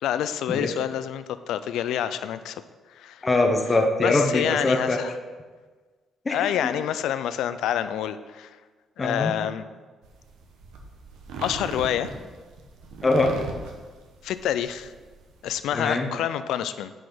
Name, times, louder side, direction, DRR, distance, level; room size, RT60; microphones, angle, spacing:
voice 1, 0.0-2.6 2.9-3.2 4.0-5.1 6.3-8.5 9.0-9.6 11.4-12.1 14.2-14.9 15.4-16.9, left 10 dB, 85° left, 13 dB, 0.4 m, -27 dB
voice 2, 3.2-5.0 6.2-6.5 9.0-9.3 13.0-13.3 15.7-16.1, left 2 dB, 25° left, 3 dB, 1.0 m, -22 dB
sound 1, 10.0-15.6, right 3 dB, 90° right, 1.1 m, -39 dB
10.5 x 4.9 x 4.0 m, 1.4 s
cardioid pair, 90°, 0 cm